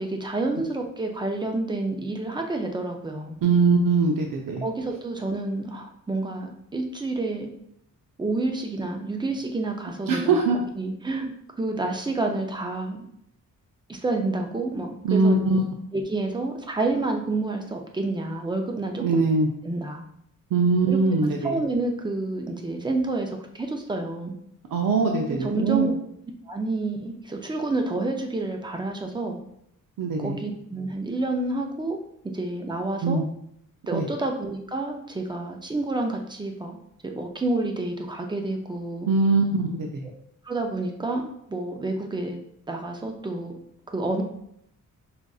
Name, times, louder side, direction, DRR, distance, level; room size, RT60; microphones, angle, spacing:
voice 1, 0.0-3.4 4.6-7.5 8.2-13.1 13.9-15.6 15.9-19.2 19.6-20.0 20.9-21.0 21.4-23.3 23.5-24.3 25.3-25.9 26.5-29.4 30.2-32.0 32.3-33.2 33.8-36.8 37.0-39.1 40.4-42.4 42.7-43.6 43.9-44.2, right 2 dB, 15° right, 3 dB, 0.4 m, -29 dB
voice 2, 3.4-4.6 10.1-10.6 15.0-15.6 19.0-19.5 20.5-21.6 24.7-25.9 30.0-30.4 33.0-33.3 33.9-34.0 39.1-40.0, right 3 dB, 85° right, 2 dB, 0.6 m, -22 dB
5.0 x 2.5 x 2.3 m, 0.74 s
wide cardioid pair, 165°, 33 cm